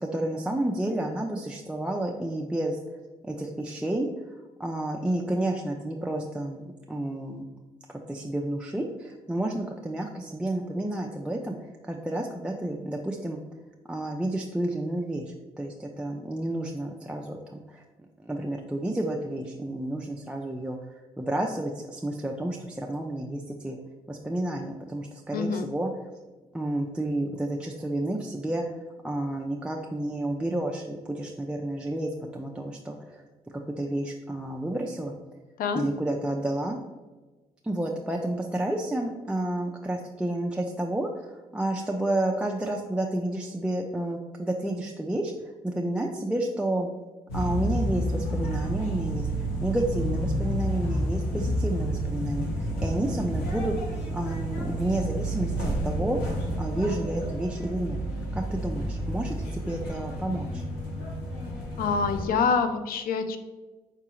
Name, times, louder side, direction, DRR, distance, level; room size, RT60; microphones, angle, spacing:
voice 1, 0.0-2.8 3.2-7.4 7.9-13.4 13.9-17.8 18.2-20.8 21.2-23.8 24.1-25.9 26.5-28.6 29.0-33.3 33.5-35.1 35.7-36.8 37.6-45.3 45.6-46.9 47.3-49.3 49.6-58.0 58.3-60.6, right 1 dB, 5° right, 1 dB, 0.4 m, -30 dB
voice 2, 25.3-25.7 35.6-35.8 61.8-63.4, left 5 dB, 65° left, 9 dB, 0.5 m, -26 dB
sound 1, 47.3-62.2, right 1 dB, 85° left, 1.0 m, -30 dB
4.8 x 3.5 x 3.0 m, 1.2 s
supercardioid pair, 60°, 16 cm